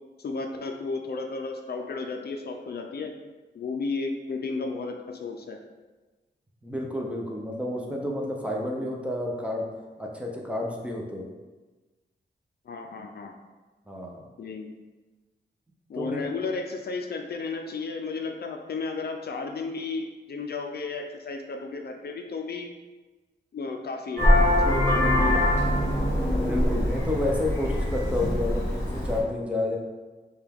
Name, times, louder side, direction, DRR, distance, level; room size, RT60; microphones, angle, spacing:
voice 1, 0.2-3.1 3.5-5.6 12.7-13.3 14.4-14.7 15.9-22.7 23.5-24.3 24.7-25.4, left 4 dB, 60° left, 4 dB, 0.4 m, -33 dB
voice 2, 6.6-9.7 10.0-11.3 13.9-14.3 15.9-16.3 26.4-29.8, left 1 dB, 5° right, -1 dB, 0.5 m, -30 dB
Vehicle horn car horn honking, 24.2-29.2, left 1 dB, 15° left, 0.9 m, -23 dB
4.9 x 2.3 x 3.4 m, 1.2 s
wide cardioid pair, 165°, 19 cm